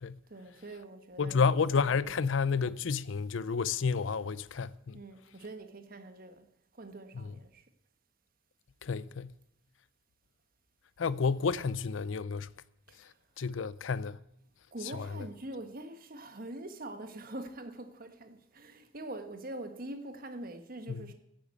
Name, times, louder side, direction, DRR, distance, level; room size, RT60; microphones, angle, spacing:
voice 1, 0.3-1.5 2.0-2.3 4.9-6.4 6.7-7.6 12.9-13.1 14.7-21.1, right 1 dB, 50° right, 1.4 m, -44 dB
voice 2, 1.2-5.0 7.1-7.3 8.8-9.3 11.0-12.5 13.4-14.2 14.9-15.3 20.9-21.0, left 5 dB, 90° left, 0.5 m, -30 dB
10.5 x 8.7 x 8.3 m
head